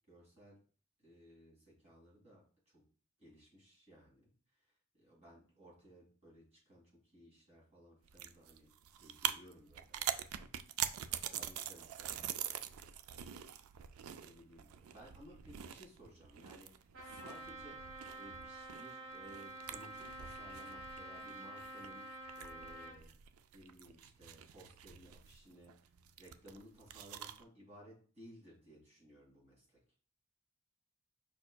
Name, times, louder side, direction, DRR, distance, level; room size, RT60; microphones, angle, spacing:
voice 1, 0.1-0.6 1.0-2.8 3.2-4.3 4.9-6.8 7.1-8.7 9.0-10.5 11.1-12.8 13.1-13.5 14.2-17.8 18.1-22.1 22.4-23.1 23.5-25.7 26.2-29.8, equal, 30° right, -3 dB, 2.3 m, -58 dB
sound 1, 8.0-27.4, right 10 dB, 85° right, 0.4 m, -45 dB
Trumpet, 16.9-23.0, right 2 dB, 65° right, 1.3 m, -48 dB
5.4 x 4.3 x 2.2 m, 0.41 s
head